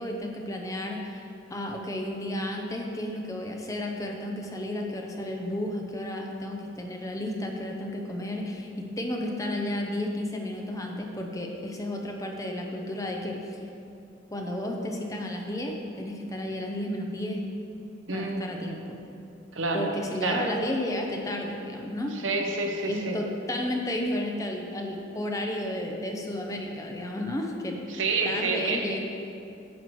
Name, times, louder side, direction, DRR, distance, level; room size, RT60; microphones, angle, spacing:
voice 1, 0.0-13.6 14.3-17.4 18.1-19.0 19.7-22.1 22.9-27.8 28.2-29.0, left 1 dB, 15° left, 1 dB, 0.7 m, -32 dB
voice 2, 18.1-18.4 19.5-19.9 20.2-20.5 22.1-23.2 27.9-28.9, right 3 dB, 80° right, 2 dB, 0.9 m, -28 dB
9.3 x 7.7 x 3.1 m, 2.7 s
head